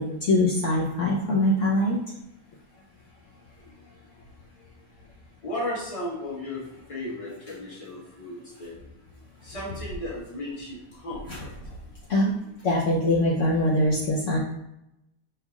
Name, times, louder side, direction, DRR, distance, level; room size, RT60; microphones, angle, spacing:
voice 1, 0.0-2.0 11.3-11.4 12.1-12.3 12.6-14.4, left 1 dB, 65° left, -4 dB, 1.0 m, -23 dB
voice 2, 5.4-8.8 9.4-11.5, left 1 dB, 25° left, -6 dB, 1.2 m, -35 dB
5.7 x 3.5 x 2.4 m, 0.84 s
omnidirectional pair, 1.5 m